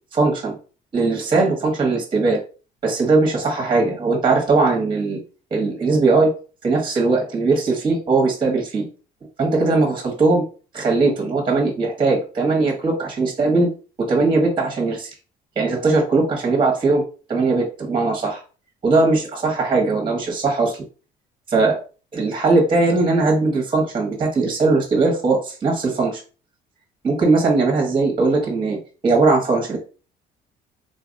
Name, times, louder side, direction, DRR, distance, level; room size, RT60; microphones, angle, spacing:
voice 1, 0.1-0.5 0.9-2.4 2.8-5.2 5.5-6.3 6.6-8.9 9.4-10.4 10.7-13.7 14.0-15.1 15.6-17.0 17.3-18.4 18.8-20.7 21.5-21.8 22.1-26.2 27.0-28.8 29.0-29.8, right 3 dB, 30° right, -1 dB, 1.2 m, -19 dB
3.8 x 2.5 x 2.6 m, 0.37 s
cardioid pair, 110°, 17 cm